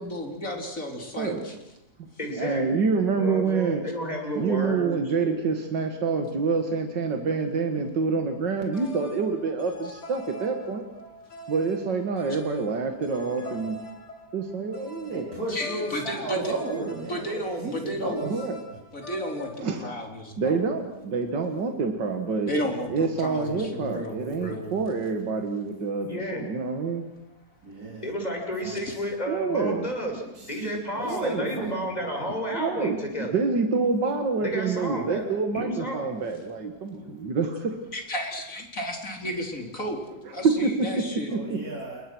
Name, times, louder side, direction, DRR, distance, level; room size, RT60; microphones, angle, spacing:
voice 1, 0.0-1.5 15.5-16.5 17.1-18.2 18.9-20.6 22.5-24.8 28.9-29.0 37.9-40.0 40.3-41.3, equal, 50° left, 2 dB, 4.3 m, -33 dB
voice 2, 1.1-1.5 2.0-2.1 2.4-3.8 4.4-10.8 11.5-13.8 14.3-15.3 16.7-17.1 18.2-18.6 19.6-19.9 20.4-22.5 22.9-27.1 29.3-29.9 31.1-31.6 32.5-37.8 40.2-40.9 41.3-41.4, right 4 dB, 90° right, 5 dB, 2.5 m, -27 dB
voice 3, 2.2-2.8 3.1-5.3 26.1-26.5 28.0-30.2 30.5-33.3 34.4-35.3 35.5-36.0 37.0-37.1, equal, 20° left, 1 dB, 6.2 m, -31 dB
sound 1, 8.5-19.6, left 2 dB, 70° left, 3.6 m, -44 dB
voice 4, 15.1-18.2 27.6-28.1 28.6-28.8 30.4-30.5 31.0-32.3 41.3-42.1, right 2 dB, 55° right, -3 dB, 4.6 m, -34 dB
29.0 x 22.0 x 6.2 m, 0.90 s
omnidirectional pair, 1.9 m